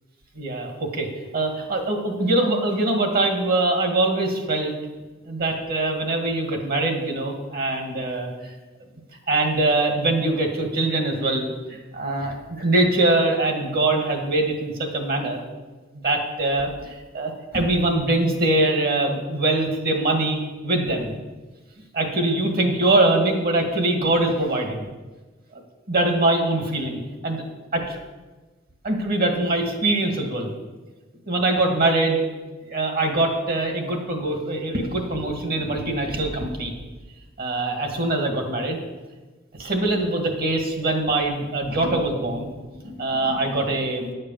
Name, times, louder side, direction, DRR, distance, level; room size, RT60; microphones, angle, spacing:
voice 1, 0.3-4.7 5.3-8.5 9.3-15.4 16.0-21.1 21.9-24.8 25.5-25.6 25.9-27.4 27.7-28.0 28.8-30.5 31.3-32.3 32.7-36.7 37.4-38.8 39.6-42.5 42.8-44.1, right 2 dB, 45° right, 3 dB, 2.0 m, -23 dB
10.5 x 6.6 x 7.4 m, 1.2 s
head